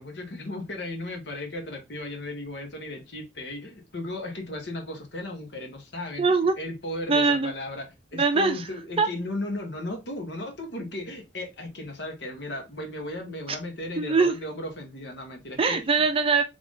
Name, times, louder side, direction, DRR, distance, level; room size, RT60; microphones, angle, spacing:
voice 1, 0.0-6.2 6.6-15.9, left 1 dB, 75° left, 1.4 m, -36 dB
voice 2, 6.2-6.5 7.1-7.5 8.2-8.6 9.0-9.1 14.0-14.3 15.6-16.4, right 4 dB, 30° right, 0.6 m, -22 dB
3.8 x 3.5 x 3.7 m
head